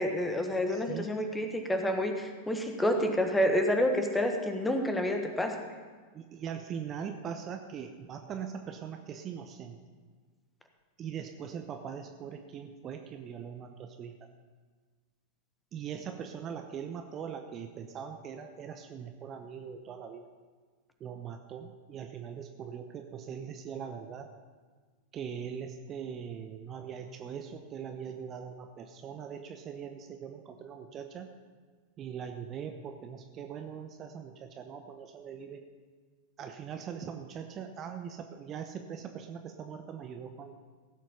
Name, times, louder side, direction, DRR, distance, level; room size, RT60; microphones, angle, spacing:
voice 1, 0.0-5.6, equal, 10° left, 5 dB, 1.4 m, -29 dB
voice 2, 0.7-1.1 6.1-9.8 11.0-14.1 15.7-20.3 21.0-24.3 25.1-31.3 32.0-35.6 36.4-40.5, right 7 dB, 30° right, 6 dB, 0.8 m, -41 dB
16.5 x 7.6 x 5.3 m, 1.5 s
figure-of-eight pair, 90°, 0 cm